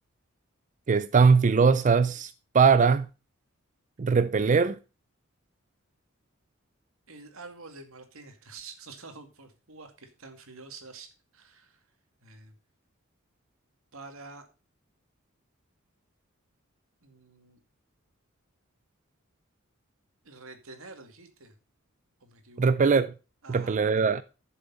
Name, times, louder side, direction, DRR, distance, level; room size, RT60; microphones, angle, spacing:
voice 1, 0.9-3.1 4.0-4.8 22.6-23.1 23.5-24.2, right 5 dB, 35° right, 0.4 m, -21 dB
voice 2, 7.1-11.8 12.2-12.6 13.9-14.4 17.0-17.6 20.2-21.5 22.2-22.7 23.4-23.8, right 3 dB, 85° right, 2.3 m, -47 dB
11.5 x 7.1 x 4.1 m
head